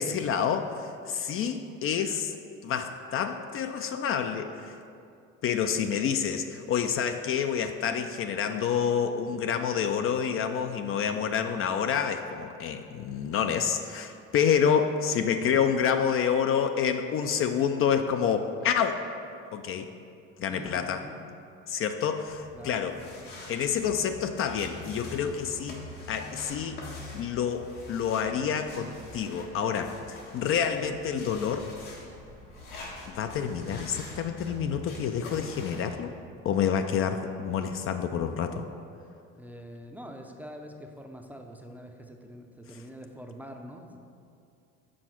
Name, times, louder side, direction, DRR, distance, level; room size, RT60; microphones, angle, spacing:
voice 1, 0.0-2.3 2.6-4.7 5.4-19.0 19.5-19.9 20.4-21.1 21.7-23.0 23.5-25.8 26.1-26.8 27.1-31.7 33.1-36.1 36.4-38.6, left 7 dB, 45° left, 7 dB, 0.4 m, -28 dB
voice 2, 20.5-21.2 22.5-22.9 39.4-44.0, equal, 5° right, 3 dB, 0.5 m, -45 dB
sound 1, 22.2-35.9, left 2 dB, 85° left, 1.7 m, -45 dB
6.3 x 4.4 x 5.9 m, 2.5 s
supercardioid pair, 105°, 30 cm